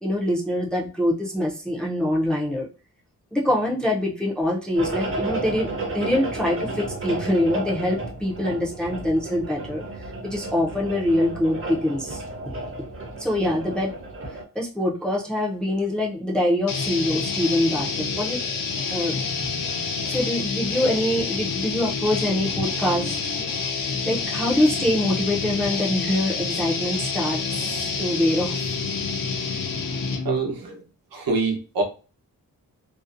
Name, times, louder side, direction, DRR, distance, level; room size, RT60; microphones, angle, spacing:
voice 1, 0.0-2.7 3.3-9.8 10.2-12.6 13.2-13.9 14.5-18.4 18.9-19.2 20.1-23.2 23.9-28.6, left 1 dB, 5° left, -3 dB, 0.4 m, -24 dB
sound 1, 4.8-14.4, right 2 dB, 40° right, 0.7 m, -32 dB
sound 2, 16.7-30.4, left 5 dB, 70° left, 0.5 m, -28 dB
voice 2, 30.2-30.8 31.1-31.8, right 3 dB, 80° right, 2 dB, 0.8 m, -25 dB
2.6 x 2.0 x 2.4 m, 0.34 s
wide cardioid pair, 175°, 35 cm